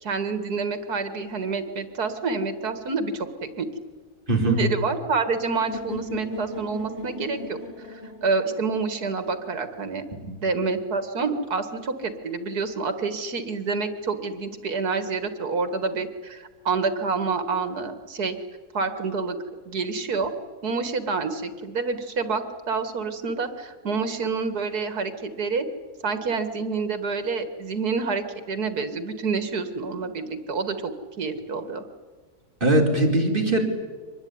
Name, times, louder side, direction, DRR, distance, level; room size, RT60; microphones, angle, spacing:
voice 1, 0.0-3.7 4.5-10.0 10.4-18.4 18.7-19.4 19.7-20.3 20.6-25.7 26.0-31.8, right 4 dB, 75° right, 9 dB, 2.3 m, -28 dB
voice 2, 4.3-4.6 10.2-10.3 32.6-33.6, right 2 dB, 30° right, 0 dB, 4.2 m, -20 dB
sound 1, 5.7-9.6, left 2 dB, 45° left, 5.5 m, -37 dB
25.0 x 20.0 x 9.7 m, 1.5 s
omnidirectional pair, 1.7 m